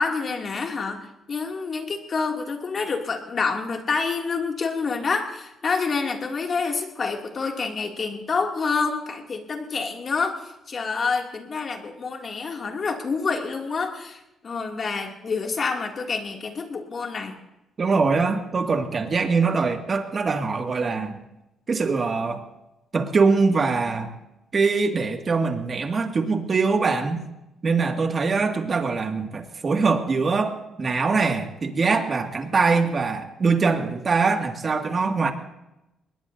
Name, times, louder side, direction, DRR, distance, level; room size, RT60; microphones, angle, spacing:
voice 1, 0.0-17.4, left 4 dB, 45° left, 2 dB, 2.6 m, -27 dB
voice 2, 17.8-21.2 21.7-22.4 22.9-24.1 24.5-27.2 27.6-35.3, right 4 dB, 40° right, 4 dB, 2.1 m, -23 dB
22.5 x 20.0 x 2.7 m, 0.93 s
cardioid pair, 90°, 0 cm